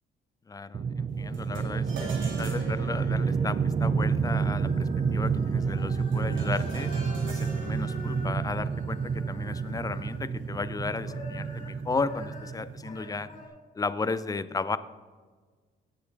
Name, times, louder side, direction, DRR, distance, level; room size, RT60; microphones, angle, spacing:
voice 1, 0.5-6.9 7.3-13.3 13.8-14.8, left 4 dB, 20° left, 14 dB, 0.5 m, -34 dB
sound 1, 0.7-13.0, right 5 dB, 30° right, 0.4 m, -29 dB
sound 2, 1.3-10.8, right 2 dB, 75° right, 3.0 m, -46 dB
sound 3, 3.0-10.5 10.9-13.5, left 2 dB, 40° left, 3.8 m, -47 dB
17.0 x 7.8 x 3.5 m, 1.5 s
cardioid pair, 90°, 20 cm